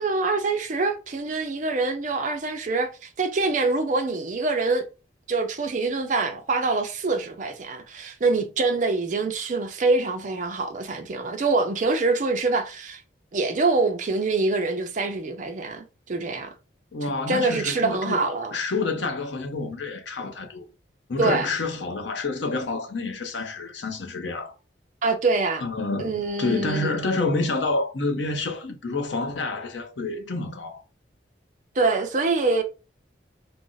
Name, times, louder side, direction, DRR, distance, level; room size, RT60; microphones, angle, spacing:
voice 1, 0.0-4.9 5.3-13.0 13.3-16.5 17.3-18.6 21.2-21.5 25.0-25.6 26.0-26.9 31.8-32.6, right 3 dB, 40° right, 0.4 m, -25 dB
voice 2, 16.9-20.6 21.1-24.5 25.6-30.8, left 3 dB, 65° left, 0.6 m, -28 dB
2.4 x 2.0 x 3.8 m
head